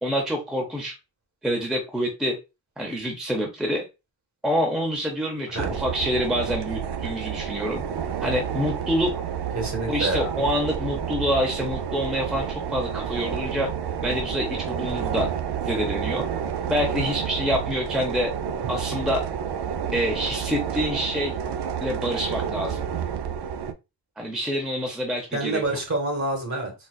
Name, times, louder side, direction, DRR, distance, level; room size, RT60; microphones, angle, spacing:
voice 1, 0.0-0.9 1.4-2.4 2.8-3.8 4.4-7.8 8.2-9.1 9.9-13.7 14.0-15.3 15.7-16.3 16.7-18.3 18.7-19.3 19.9-21.4 21.8-22.9 24.2-25.6, equal, ahead, 0.7 m, -26 dB
sound 1, 5.6-23.7, right 8 dB, 65° right, 0.5 m, -30 dB
voice 2, 9.5-10.4 25.3-26.7, right 2 dB, 40° right, 1.3 m, -27 dB
4.1 x 2.4 x 2.2 m
wide cardioid pair, 120°, 43 cm